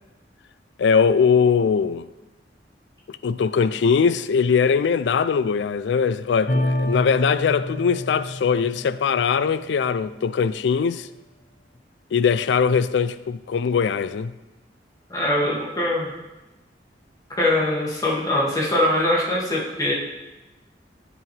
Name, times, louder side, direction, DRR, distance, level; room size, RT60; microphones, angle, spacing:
voice 1, 0.8-2.1 3.2-11.1 12.1-14.3, left 6 dB, 85° left, 0.4 m, -21 dB
sound 1, 6.5-9.9, left 1 dB, 50° left, 0.7 m, -28 dB
voice 2, 15.1-16.1 17.3-19.9, left 1 dB, 20° left, 2.1 m, -22 dB
10.5 x 6.0 x 3.3 m
head